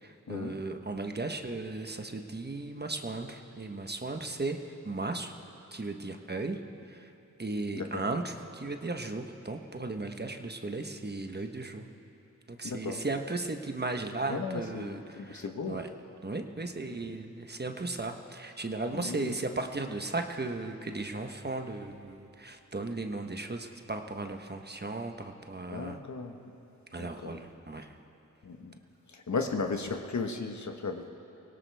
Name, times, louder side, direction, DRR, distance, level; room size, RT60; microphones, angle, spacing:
voice 1, 0.0-5.3 5.7-6.6 6.9-7.1 7.4-11.8 12.5-15.9 16.2-26.0 26.9-28.0, right 3 dB, 30° right, 5 dB, 1.2 m, -36 dB
voice 2, 7.7-8.0 12.6-13.0 14.3-15.8 17.0-17.1 18.9-19.3 25.7-26.3 27.0-27.4 28.4-28.8 29.1-31.1, left 4 dB, 55° left, 4 dB, 1.3 m, -35 dB
24.0 x 17.5 x 3.5 m, 2.7 s
cardioid pair, 50°, 33 cm